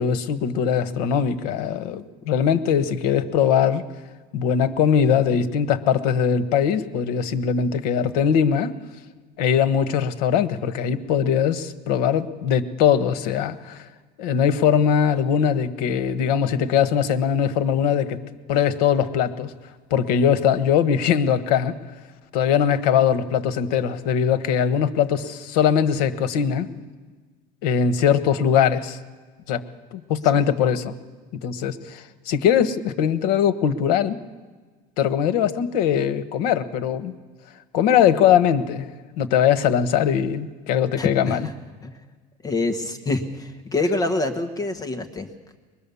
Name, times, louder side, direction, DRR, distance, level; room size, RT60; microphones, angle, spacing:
voice 1, 0.0-3.8 4.3-8.7 9.4-13.8 14.2-18.2 18.5-19.5 19.9-21.8 22.3-26.7 27.6-29.0 29.5-29.6 29.9-30.9 31.4-34.2 35.0-37.2 37.7-38.9 39.2-41.5, left 8 dB, 75° left, 11 dB, 1.3 m, -21 dB
voice 2, 41.0-41.4 41.8-42.0 42.4-45.3, left 2 dB, 15° left, 7 dB, 1.2 m, -26 dB
22.0 x 22.0 x 7.0 m, 1.4 s
cardioid pair, 170°, 20 cm